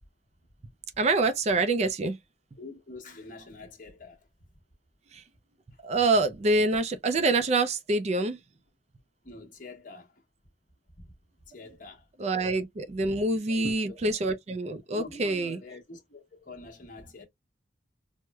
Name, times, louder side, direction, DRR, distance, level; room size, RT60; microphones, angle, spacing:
voice 1, 1.0-2.2 5.1-5.2 5.8-8.4 12.2-15.6, right 2 dB, 35° right, 0.3 m, -26 dB
voice 2, 2.6-4.3 9.2-10.2 11.0-11.1 11.5-12.1 13.5-14.0 14.9-17.2, left 3 dB, 45° left, 1.1 m, -45 dB
4.5 x 2.1 x 2.2 m
head